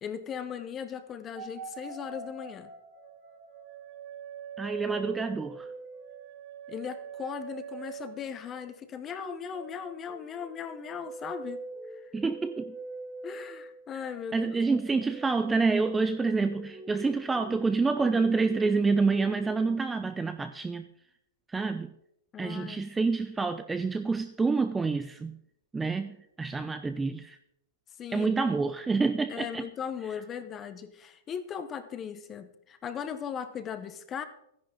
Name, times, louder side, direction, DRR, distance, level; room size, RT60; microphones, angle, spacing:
voice 1, 0.0-2.7 6.7-11.6 11.9-12.1 13.2-14.5 22.3-22.9 28.0-28.4 29.3-34.2, left 7 dB, 20° left, 11 dB, 0.8 m, -38 dB
sound 1, 1.4-8.8 9.1-20.2, right 4 dB, 35° right, 2.6 m, -44 dB
voice 2, 4.6-5.7 12.1-12.7 14.3-20.8 21.5-21.9 22.4-25.4 25.7-27.4 28.1-29.6, right 4 dB, 10° right, 10 dB, 0.4 m, -28 dB
13.5 x 10.5 x 3.8 m, 0.79 s
hypercardioid pair, 155°, 0 cm